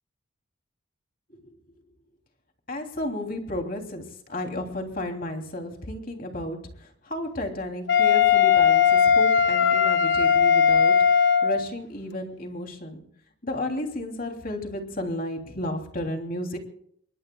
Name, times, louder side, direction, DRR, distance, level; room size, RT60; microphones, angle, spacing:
voice 1, 2.7-13.0 13.4-16.6, left 1 dB, 45° left, 3 dB, 3.0 m, -33 dB
Wind instrument woodwind instrument, 7.9-11.6, left 7 dB, 60° left, 1.6 m, -19 dB
26.5 x 22.5 x 2.3 m, 0.64 s
head